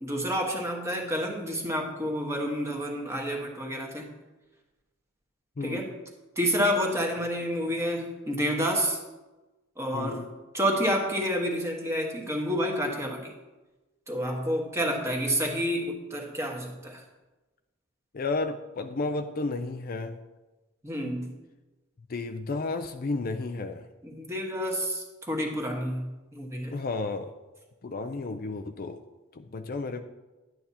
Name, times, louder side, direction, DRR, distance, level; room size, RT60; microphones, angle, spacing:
voice 1, 0.0-4.1 5.6-5.9 6.4-9.0 9.8-10.2 10.5-13.3 14.1-17.0 20.8-21.3 24.0-26.7, equal, 15° right, 1 dB, 1.3 m, -29 dB
voice 2, 5.6-5.9 9.9-10.3 18.1-20.2 22.1-23.9 26.7-27.3 27.8-29.0 29.3-30.0, left 3 dB, 45° left, 8 dB, 0.4 m, -32 dB
10.5 x 8.8 x 2.8 m, 1.1 s
head